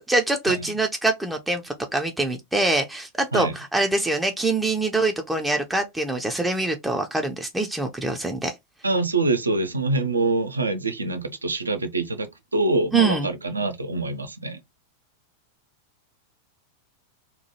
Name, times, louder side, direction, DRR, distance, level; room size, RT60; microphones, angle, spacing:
voice 1, 0.0-8.5 12.9-13.3, right 2 dB, 5° right, 0.4 m, -24 dB
voice 2, 8.8-14.6, right 3 dB, 80° right, 0.4 m, -25 dB
2.9 x 2.2 x 2.8 m
figure-of-eight pair, 90°, 0 cm